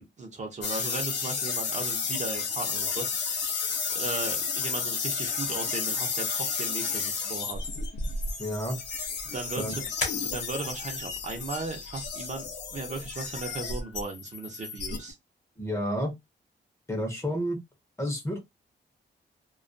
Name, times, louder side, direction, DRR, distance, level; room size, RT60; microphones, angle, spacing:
voice 1, 0.0-3.3 3.9-7.7 9.3-15.2, right 3 dB, 40° right, 0.6 m, -37 dB
sound 1, 0.6-15.1, left 5 dB, 65° left, 0.6 m, -32 dB
sound 2, 1.4-13.0, left 3 dB, 45° left, 1.0 m, -45 dB
voice 2, 8.4-8.8 9.6-9.8 15.6-16.1 16.9-17.6 18.0-18.4, equal, 15° left, 0.7 m, -30 dB
2.3 x 2.2 x 2.5 m
wide cardioid pair, 160°, 19 cm